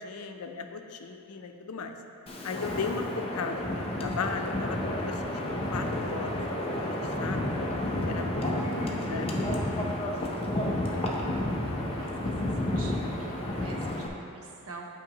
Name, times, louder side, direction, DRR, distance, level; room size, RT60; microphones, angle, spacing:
voice 1, 0.0-1.9 2.4-5.3 5.7-6.4 6.7-6.9 7.2-7.5 8.1-9.3, left 5 dB, 80° left, 5 dB, 0.5 m, -36 dB
Wind, 2.3-14.1, left 1 dB, 25° left, 0.5 m, -31 dB
voice 2, 12.6-14.8, right 3 dB, 70° right, 1 dB, 0.8 m, -47 dB
10.5 x 4.6 x 3.0 m, 2.7 s
head